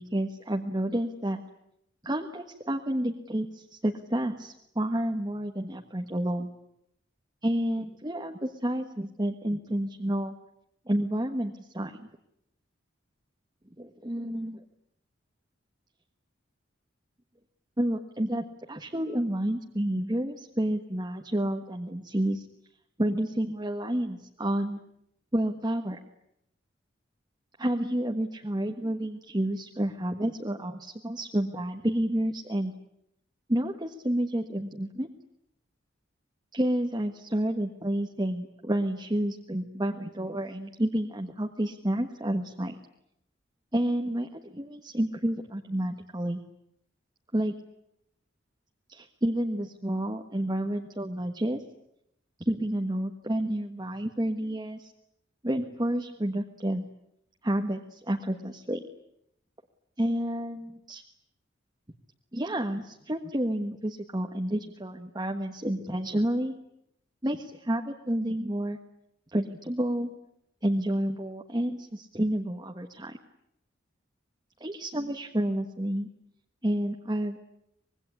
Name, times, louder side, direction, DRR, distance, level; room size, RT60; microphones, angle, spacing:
voice 1, 0.0-1.4 2.0-6.5 7.4-10.3 10.9-12.0 13.8-14.6 17.8-22.4 23.0-24.8 25.3-26.0 27.6-32.7 33.5-35.1 36.5-42.7 43.7-46.4 47.3-47.5 48.9-51.6 52.4-54.9 55.4-56.8 57.4-58.8 60.0-61.0 62.3-66.5 67.2-68.8 69.3-70.1 70.6-73.2 74.6-76.1 76.6-77.4, right 1 dB, 20° right, 2 dB, 1.4 m, -30 dB
25.0 x 21.5 x 9.9 m, 0.78 s
head